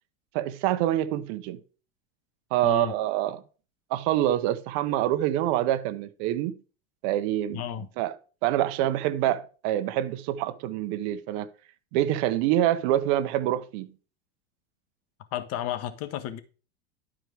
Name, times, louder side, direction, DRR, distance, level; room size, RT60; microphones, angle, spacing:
voice 1, 0.3-1.6 2.5-3.4 3.9-6.6 7.0-8.1 8.4-11.5 11.9-13.9, right 13 dB, 60° right, 1.1 m, -26 dB
voice 2, 7.5-7.9 15.3-16.4, left 11 dB, 50° left, 1.4 m, -32 dB
11.0 x 4.9 x 4.7 m
hypercardioid pair, 95°, 32 cm